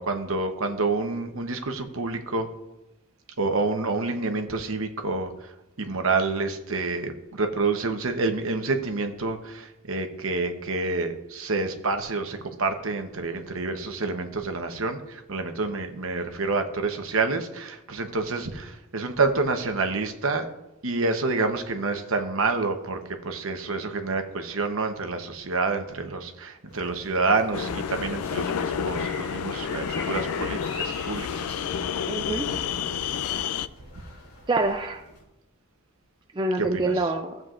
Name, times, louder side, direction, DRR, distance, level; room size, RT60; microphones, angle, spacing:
voice 1, 0.0-2.5 3.4-5.5 5.8-20.5 20.8-23.0 23.2-31.5 36.6-36.9, right 3 dB, 65° right, 6 dB, 1.0 m, -28 dB
sound 1, 26.7-35.2, left 4 dB, 70° left, 3.2 m, -43 dB
sound 2, 27.5-33.7, left 7 dB, 90° left, 0.4 m, -30 dB
voice 2, 32.1-32.5 34.5-35.0 36.3-37.4, right 2 dB, 20° right, 5 dB, 0.4 m, -26 dB
15.5 x 7.6 x 2.5 m, 0.93 s
head